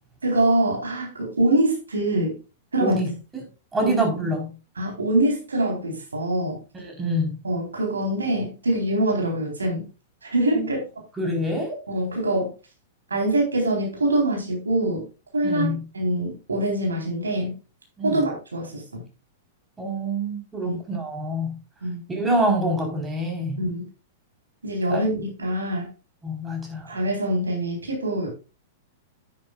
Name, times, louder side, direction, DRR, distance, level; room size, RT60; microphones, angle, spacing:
voice 1, 0.2-2.4 2.7-3.0 3.8-4.0 4.8-6.6 7.4-9.8 10.3-10.8 11.9-12.5 13.1-15.0 15.3-15.7 15.9-17.6 18.0-19.0 20.6-20.8 21.8-22.0 23.6-23.8 24.6-25.8 26.9-28.3, right 1 dB, 80° right, 0 dB, 4.1 m, -24 dB
voice 2, 2.8-3.5 3.7-4.5 6.7-7.3 10.5-10.7 11.2-11.8 15.4-15.8 18.0-18.2 19.8-21.5 22.1-23.6 24.9-25.0 26.2-26.9, right 1 dB, 15° right, 1 dB, 4.3 m, -26 dB
10.5 x 9.5 x 2.5 m, 0.31 s
figure-of-eight pair, 100°, 0 cm